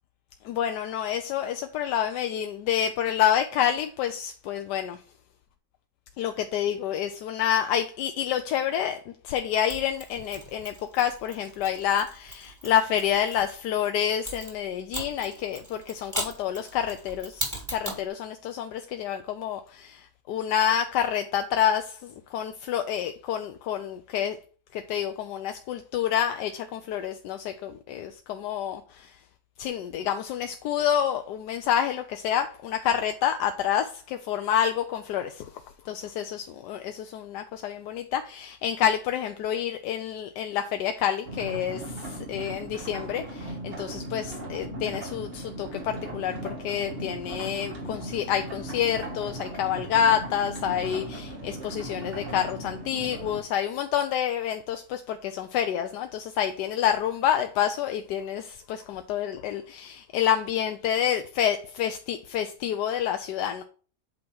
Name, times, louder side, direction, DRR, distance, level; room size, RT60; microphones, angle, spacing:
voice 1, 0.4-5.0 6.2-24.4 24.7-29.2 29.6-35.5 35.8-63.6, left 9 dB, 90° left, 1.2 m, -28 dB
Mechanisms, 9.7-13.6 14.3-18.1, right 1 dB, 10° right, 2.0 m, -38 dB
sound 1, 41.2-53.4, right 1 dB, 35° right, 1.7 m, -37 dB
8.5 x 3.0 x 6.0 m
omnidirectional pair, 1.7 m